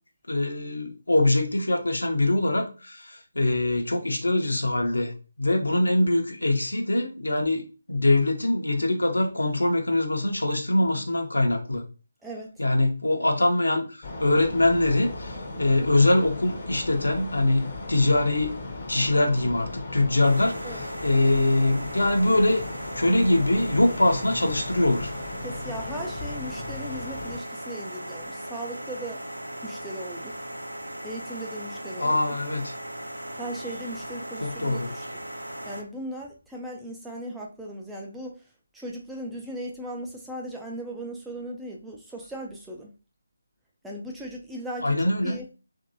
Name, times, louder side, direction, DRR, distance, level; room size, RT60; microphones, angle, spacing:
voice 1, 0.3-11.8 12.6-18.6 18.9-22.6 23.0-25.1 32.0-32.7 34.4-34.9 44.8-45.4, left 2 dB, 70° left, 3 dB, 0.8 m, -23 dB
sound 1, 14.0-27.4, left 2 dB, 35° left, 0.7 m, -37 dB
sound 2, 20.2-35.8, right 1 dB, 80° right, 0.7 m, -38 dB
voice 2, 25.4-29.2 29.6-30.4 31.0-32.2 33.3-35.0 35.7-38.3 38.7-42.9 43.8-45.0 45.2-45.5, right 1 dB, 5° right, -2 dB, 0.3 m, -37 dB
2.9 x 2.6 x 2.6 m, 0.33 s
figure-of-eight pair, 150°, 0 cm